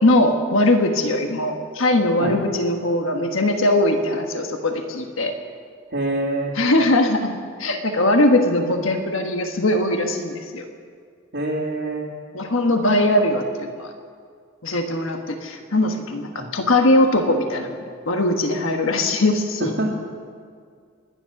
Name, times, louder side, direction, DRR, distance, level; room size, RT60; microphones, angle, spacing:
voice 1, 0.0-5.3 6.5-10.6 12.3-13.9 14.6-17.8 18.1-19.7, left 1 dB, 75° left, 4 dB, 1.4 m, -20 dB
voice 2, 5.9-6.5 11.3-12.1 16.3-16.5 19.8-19.9, right 2 dB, 70° right, -7 dB, 2.3 m, -25 dB
23.0 x 10.5 x 5.9 m, 2.1 s
head